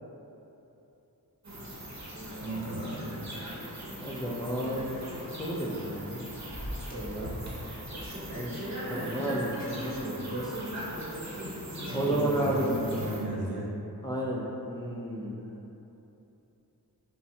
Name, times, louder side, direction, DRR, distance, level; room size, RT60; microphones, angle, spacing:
sound 1, 1.4-13.2, equal, 45° right, 0.9 m, -38 dB
voice 1, 2.4-3.4 11.9-13.7, right 1 dB, 90° right, -5 dB, 0.8 m, -35 dB
voice 2, 4.0-4.9 5.4-6.2 6.9-7.3 8.3-10.6 11.9-12.7 14.0-15.4, right 1 dB, 10° left, -5 dB, 0.3 m, -32 dB
5.5 x 2.1 x 2.7 m, 2.9 s
wide cardioid pair, 95°, 39 cm